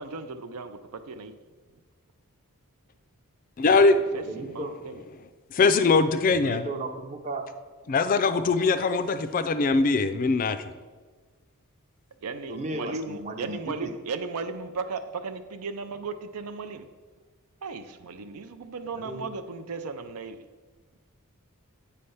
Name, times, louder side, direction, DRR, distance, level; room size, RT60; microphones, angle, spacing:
voice 1, 0.0-1.3 3.7-3.9 4.1-5.0 12.2-16.9 17.6-20.4, right 4 dB, 85° right, 0.5 m, -36 dB
voice 2, 3.6-4.0 5.5-6.7 7.9-10.6, left 3 dB, 40° left, 0.3 m, -21 dB
voice 3, 4.3-4.7 6.4-7.5 12.5-13.9 19.0-19.3, right 2 dB, 30° right, 0.6 m, -35 dB
8.4 x 3.3 x 5.5 m
head